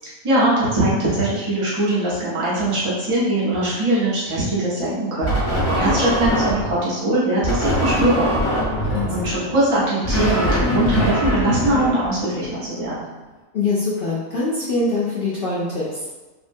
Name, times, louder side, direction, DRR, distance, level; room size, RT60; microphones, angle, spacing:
voice 1, 0.2-5.4 5.8-8.3 9.1-13.1, right 1 dB, 30° right, -8 dB, 0.6 m, -21 dB
sound 1, 5.2-6.8 7.4-12.6, equal, 20° left, 0.8 m, -22 dB
voice 2, 8.8-9.3 13.5-16.0, left 3 dB, 65° left, -7 dB, 0.6 m, -24 dB
3.4 x 2.1 x 2.5 m, 1.2 s
omnidirectional pair, 1.4 m